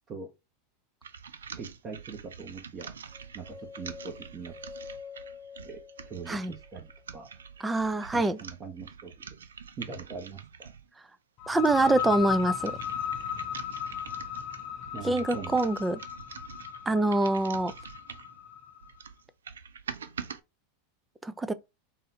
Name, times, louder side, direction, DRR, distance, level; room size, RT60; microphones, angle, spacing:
sound 1, 1.0-10.9 11.4-18.4 18.8-20.4, right 7 dB, 85° right, 0.4 m, -45 dB
voice 1, 1.5-2.9 3.3-4.5 5.6-7.3 8.1-9.1 9.8-10.4 14.9-15.6, right 5 dB, 35° right, 1.2 m, -41 dB
sound 2, 3.1-7.2, left 5 dB, 55° right, 1.1 m, -47 dB
voice 2, 7.6-8.4 11.5-12.8 15.0-16.0 16.9-17.7 21.2-21.5, right 2 dB, 15° right, 0.5 m, -25 dB
sound 3, 11.4-18.9, left 9 dB, 50° left, 0.6 m, -36 dB
3.9 x 2.6 x 4.2 m
hypercardioid pair, 100°, 0 cm